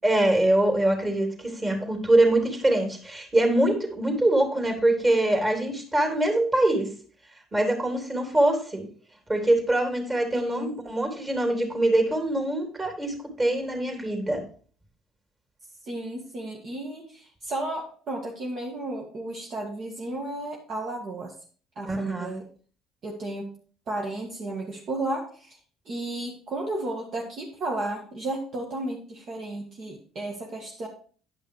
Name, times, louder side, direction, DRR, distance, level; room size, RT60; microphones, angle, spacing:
voice 1, 0.0-6.9 7.5-8.9 9.3-14.4 21.8-22.3, right 1 dB, 25° right, 3 dB, 3.2 m, -23 dB
voice 2, 10.3-10.8 15.8-21.3 21.8-22.4 23.0-23.5 23.9-25.6 25.9-30.9, right 2 dB, 55° right, 0 dB, 1.8 m, -33 dB
10.0 x 5.5 x 4.8 m, 0.43 s
hypercardioid pair, 65°, 0 cm